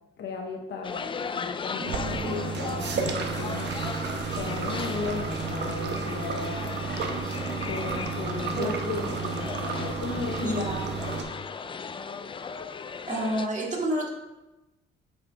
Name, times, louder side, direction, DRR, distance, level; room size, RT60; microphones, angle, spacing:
voice 1, 0.2-3.8 4.3-6.7 7.0-7.2 7.7-10.6, left 4 dB, 65° left, 1 dB, 0.9 m, -35 dB
sound 1, 0.8-13.5, left 5 dB, 25° left, 0.3 m, -37 dB
voice 2, 1.8-2.5 8.5-9.1 10.4-10.9 13.1-14.1, right 1 dB, 35° right, -2 dB, 2.1 m, -30 dB
sound 2, 1.9-11.2, right 5 dB, 60° right, 1.0 m, -32 dB
8.0 x 5.7 x 3.3 m, 1.0 s
cardioid pair, 90°, 20 cm